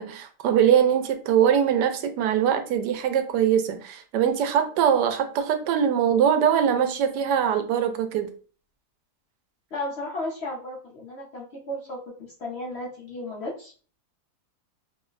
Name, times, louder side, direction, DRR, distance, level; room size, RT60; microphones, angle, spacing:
voice 1, 0.0-8.3, right 8 dB, 85° right, 8 dB, 1.2 m, -22 dB
voice 2, 9.7-13.7, left 1 dB, 60° left, -2 dB, 0.7 m, -34 dB
3.0 x 2.1 x 3.7 m, 0.39 s
omnidirectional pair, 1.7 m